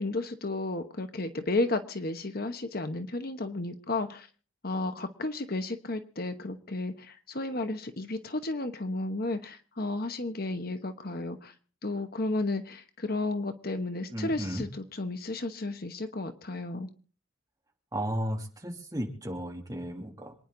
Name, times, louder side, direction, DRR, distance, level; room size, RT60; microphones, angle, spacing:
voice 1, 0.0-4.3 4.6-11.5 11.8-16.9, left 2 dB, 50° left, 8 dB, 1.1 m, -33 dB
voice 2, 14.1-14.7 17.9-20.3, equal, 20° right, 1 dB, 2.8 m, -34 dB
27.0 x 10.0 x 3.9 m, 0.40 s
head